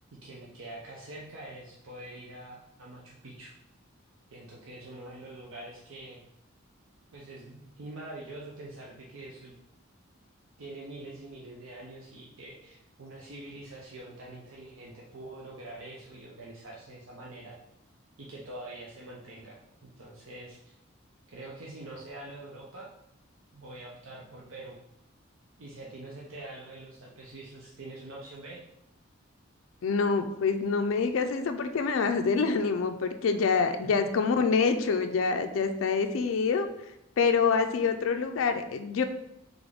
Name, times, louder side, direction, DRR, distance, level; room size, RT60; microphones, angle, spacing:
voice 1, 0.1-3.5 4.3-6.2 7.1-9.6 10.6-17.5 18.2-20.7 21.3-22.9 23.5-24.8 25.6-28.6 33.8-34.1, right 2 dB, 75° right, -3 dB, 0.6 m, -45 dB
voice 2, 29.8-36.7 37.2-39.0, left 5 dB, 70° left, 7 dB, 0.4 m, -26 dB
3.8 x 3.5 x 3.4 m, 0.83 s
head